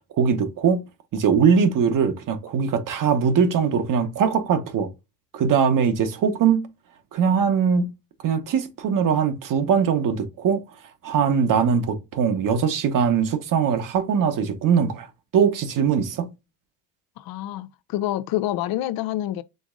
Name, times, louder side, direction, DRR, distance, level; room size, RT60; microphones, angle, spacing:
voice 1, 0.2-0.8 1.1-4.9 5.3-6.7 7.1-7.9 8.2-10.6 11.0-15.1 15.3-16.3, right 6 dB, 55° right, 1.0 m, -21 dB
voice 2, 17.2-19.4, left 14 dB, 70° left, 0.6 m, -27 dB
5.2 x 3.5 x 2.4 m
supercardioid pair, 75°, 37 cm